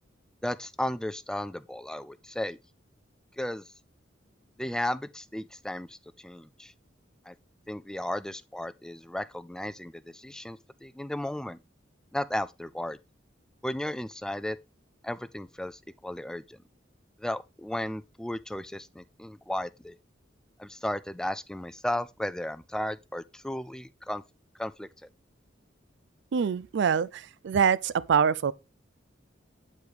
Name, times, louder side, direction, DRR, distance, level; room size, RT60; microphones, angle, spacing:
voice 1, 0.4-2.6 3.4-3.7 4.6-6.7 7.3-7.4 7.7-11.6 12.1-13.0 13.6-14.6 15.0-16.6 17.2-20.0 20.6-24.2 24.6-24.9, left 1 dB, 5° left, 0.3 m, -34 dB
voice 2, 26.3-28.5, right 7 dB, 70° right, 0.4 m, -25 dB
7.9 x 4.7 x 3.3 m
head